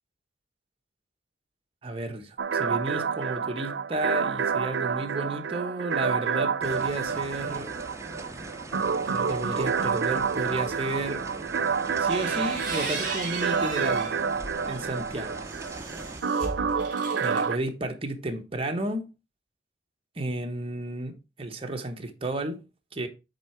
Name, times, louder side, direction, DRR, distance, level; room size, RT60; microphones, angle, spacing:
voice 1, 1.8-7.7 9.0-11.2 12.0-14.2 14.6-15.4 17.2-19.1 20.2-22.6 22.9-23.1, right 2 dB, 30° right, 1.0 m, -32 dB
sound 1, 2.4-17.6, right 6 dB, 85° right, 0.6 m, -29 dB
sound 2, 6.6-16.2, right 2 dB, 15° right, 0.6 m, -41 dB
sound 3, 11.9-14.2 14.7-17.5, right 4 dB, 50° right, 2.7 m, -36 dB
8.1 x 3.7 x 4.4 m
head